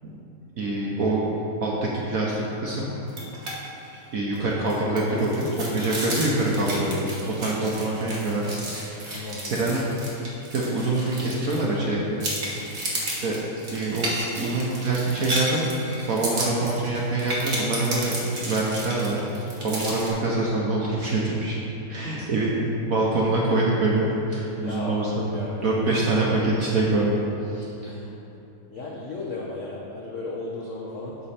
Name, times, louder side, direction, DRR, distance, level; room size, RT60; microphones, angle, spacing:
voice 1, 0.6-1.2 1.6-2.9 4.1-7.1 7.4-8.6 8.8-9.8 10.5-12.2 13.0-13.4 13.7-14.1 14.4-15.7 16.1-18.2 18.4-21.6 21.9-27.2 27.5-27.9, right 2 dB, 60° right, -4 dB, 0.9 m, -25 dB
sound 1, 3.1-3.5 3.8-4.0 4.3-11.8 12.2-20.1, right 1 dB, 40° right, 1.4 m, -32 dB
voice 2, 7.6-8.2 8.9-9.5 22.2-22.3 24.6-26.1 27.8-28.1 28.7-31.2, left 3 dB, 75° left, -3 dB, 0.7 m, -35 dB
12.0 x 4.3 x 4.2 m, 3.0 s
omnidirectional pair, 2.4 m